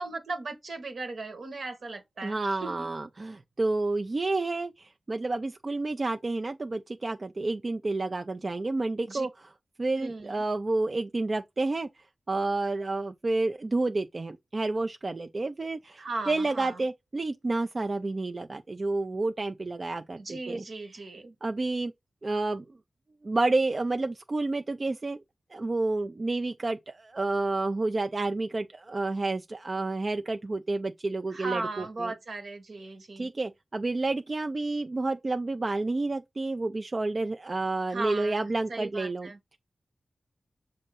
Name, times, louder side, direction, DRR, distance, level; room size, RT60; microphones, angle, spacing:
voice 1, 0.0-2.9 9.1-9.3 10.0-10.4 16.0-16.8 20.2-21.3 31.3-33.3 37.9-39.4, right 3 dB, 75° right, 1.2 m, -37 dB
voice 2, 2.2-9.5 9.8-11.9 12.3-20.6 21.4-21.9 22.2-22.6 23.2-25.2 25.5-32.1 33.2-39.6, right 2 dB, 45° right, 0.4 m, -30 dB
6.4 x 2.6 x 5.5 m
cardioid pair, 45°, 0 cm